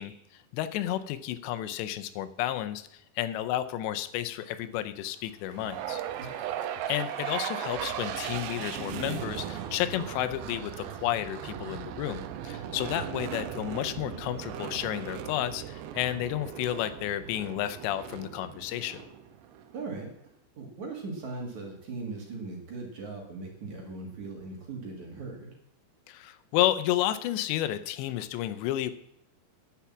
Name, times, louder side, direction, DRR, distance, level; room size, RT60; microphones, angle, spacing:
voice 1, 0.0-6.0 6.9-19.0 26.1-28.9, left 13 dB, 85° left, 12 dB, 2.9 m, -31 dB
Applause, 4.4-11.5, left 4 dB, 55° left, 2.5 m, -55 dB
sound 1, 5.6-19.8, right 10 dB, 90° right, 3.0 m, -37 dB
voice 2, 19.7-20.1 20.6-25.5, right 3 dB, 50° right, 0 dB, 2.8 m, -39 dB
10.0 x 8.2 x 7.2 m, 0.77 s
omnidirectional pair, 5.0 m